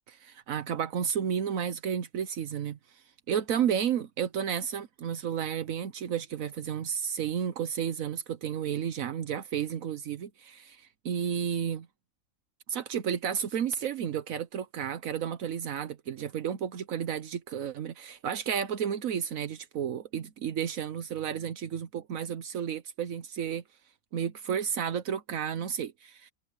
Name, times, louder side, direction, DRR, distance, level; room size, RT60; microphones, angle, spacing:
voice 1, 0.1-11.9 12.7-23.6 24.1-26.3, right 8 dB, 80° right, 1.3 m, -32 dB
omnidirectional pair, 1.4 m